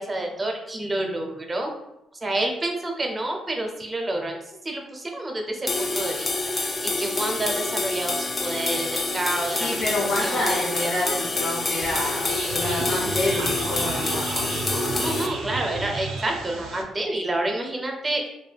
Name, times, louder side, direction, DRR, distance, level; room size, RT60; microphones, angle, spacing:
voice 1, 0.0-1.7 2.2-4.4 4.6-6.7 7.0-9.8 10.2-10.4 10.8-11.1 14.8-18.4, right 1 dB, 25° right, 2 dB, 0.5 m, -29 dB
sound 1, 5.7-15.3, left 2 dB, 30° left, 0.4 m, -27 dB
voice 2, 9.5-14.7, left 1 dB, 85° left, -6 dB, 0.6 m, -28 dB
sound 2, 11.8-16.8, right 3 dB, 80° right, 0.4 m, -32 dB
2.2 x 2.2 x 3.3 m, 0.87 s
cardioid pair, 90°, 0 cm